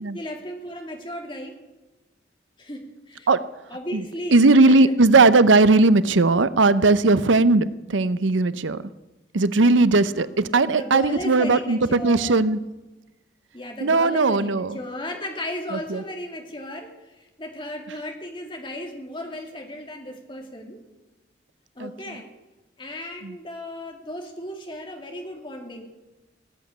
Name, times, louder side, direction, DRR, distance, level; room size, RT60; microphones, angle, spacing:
voice 1, 0.1-1.6 2.6-3.3 3.7-4.9 9.6-9.7 10.1-10.2 10.5-12.5 13.5-20.8 21.7-22.3 22.8-25.8, left 1 dB, 25° left, 3 dB, 2.6 m, -35 dB
voice 2, 4.3-8.8 9.3-12.6 13.8-14.8 15.9-16.0 21.8-21.9 23.2-23.3, right 3 dB, 90° right, 15 dB, 0.7 m, -18 dB
18.0 x 8.2 x 9.8 m, 1.1 s
head